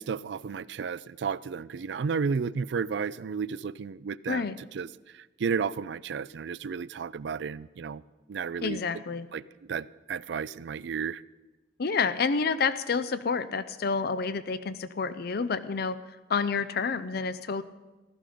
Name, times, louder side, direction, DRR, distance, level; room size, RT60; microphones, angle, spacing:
voice 1, 0.0-4.9 5.1-8.0 8.3-8.8 9.3-9.4 9.7-11.2, right 6 dB, 65° right, 0.4 m, -32 dB
voice 2, 4.3-4.6 8.6-9.3 11.8-16.0 16.3-17.6, left 5 dB, 55° left, 0.5 m, -29 dB
15.0 x 13.0 x 5.1 m
head